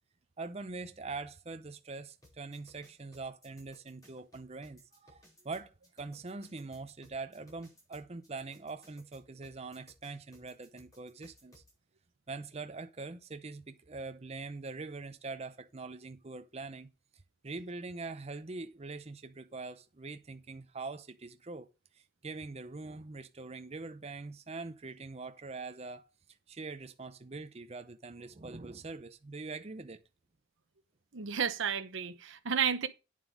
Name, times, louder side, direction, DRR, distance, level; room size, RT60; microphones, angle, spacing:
voice 1, 0.4-11.6 12.3-16.9 17.4-21.7 21.9-26.1 26.5-30.0, right 3 dB, 30° right, 0.6 m, -43 dB
sound 1, 2.2-11.7, left 1 dB, 15° left, 5.5 m, -61 dB
voice 2, 31.1-32.9, right 7 dB, 65° right, 0.9 m, -32 dB
9.2 x 7.4 x 5.0 m
head